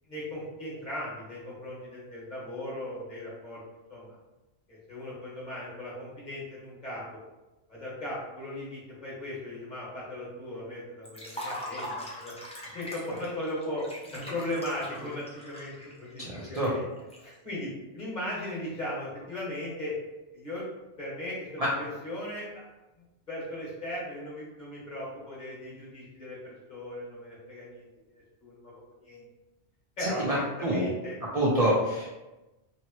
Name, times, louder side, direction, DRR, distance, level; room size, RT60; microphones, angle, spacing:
voice 1, 0.1-3.6 3.9-4.1 4.7-7.0 7.7-12.3 12.7-13.9 14.1-16.8 17.2-20.0 20.3-20.7 21.0-22.6 23.3-27.8 28.1-28.7 29.0-29.2 30.0-31.1, left 1 dB, 40° left, -7 dB, 1.2 m, -37 dB
Liquid, 11.1-17.2, equal, 10° left, 0.3 m, -41 dB
voice 2, 16.2-16.7 21.6-21.7 30.0-30.9 31.3-32.2, right 1 dB, 45° right, -6 dB, 0.5 m, -27 dB
2.8 x 2.7 x 3.0 m, 1.1 s
omnidirectional pair, 1.2 m